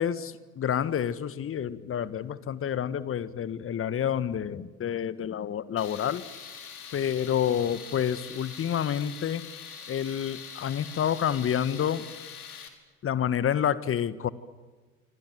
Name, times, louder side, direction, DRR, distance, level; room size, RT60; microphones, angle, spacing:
voice 1, 0.0-6.2 6.9-9.4 9.9-12.0 13.0-14.3, left 9 dB, 30° left, 15 dB, 1.5 m, -28 dB
Tools, 5.8-12.7, left 7 dB, 75° left, 3.6 m, -43 dB
27.0 x 26.0 x 7.7 m, 1.3 s
figure-of-eight pair, 70°, 44 cm